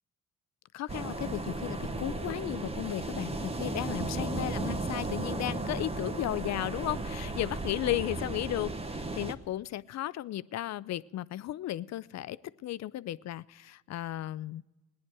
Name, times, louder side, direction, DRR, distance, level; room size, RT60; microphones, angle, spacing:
voice 1, 0.7-14.6, left 14 dB, 60° left, 19 dB, 0.5 m, -35 dB
sound 1, 0.9-9.3, right 2 dB, 20° right, 1.1 m, -35 dB
18.0 x 10.5 x 4.6 m, 1.0 s
cardioid pair, 90°, 30 cm